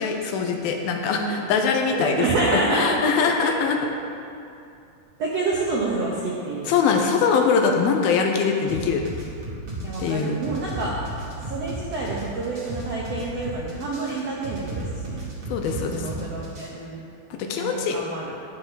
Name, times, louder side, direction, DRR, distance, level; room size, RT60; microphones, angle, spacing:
voice 1, 0.0-2.3 2.5-3.8 6.7-9.0 10.0-10.4 15.5-16.1 17.3-18.0, left 5 dB, 75° left, 3 dB, 2.5 m, -22 dB
voice 2, 1.2-1.5 1.9-2.9 3.4-3.5 5.2-6.7 9.8-10.9 11.5-15.2 15.9-17.1 17.6-18.3, right 3 dB, 70° right, -5 dB, 1.5 m, -28 dB
sound 1, 8.7-16.7, right 1 dB, 35° right, 1.5 m, -34 dB
11.5 x 9.5 x 4.0 m, 2.6 s
omnidirectional pair, 4.5 m